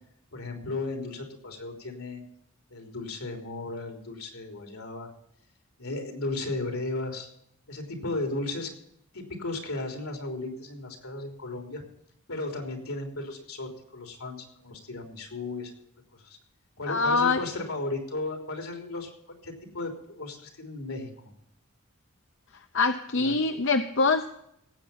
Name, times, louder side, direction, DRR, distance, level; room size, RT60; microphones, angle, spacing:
voice 1, 0.3-2.2 2.7-5.1 5.8-7.3 7.7-8.7 9.1-11.8 12.3-15.7 16.1-16.4 16.8-19.1 19.4-21.3 23.1-23.4, left 2 dB, 80° left, 4 dB, 3.5 m, -35 dB
voice 2, 16.9-17.4 22.7-24.3, left 4 dB, 60° left, 8 dB, 0.7 m, -24 dB
17.5 x 8.2 x 5.7 m, 0.75 s
head